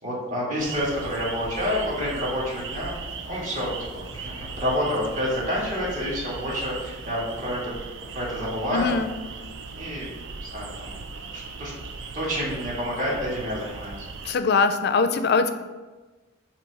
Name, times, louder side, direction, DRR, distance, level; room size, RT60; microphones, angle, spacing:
voice 1, 0.0-2.9 3.2-7.7 8.0-9.0 9.7-10.1 10.3-11.0 11.3-11.7 12.0-14.1, equal, 40° right, -5 dB, 1.9 m, -29 dB
sound 1, 0.6-14.4, right 4 dB, 65° right, 0.5 m, -38 dB
voice 2, 8.7-9.1 14.2-15.5, left 4 dB, 55° left, 9 dB, 0.4 m, -22 dB
7.0 x 3.1 x 4.7 m, 1.2 s
head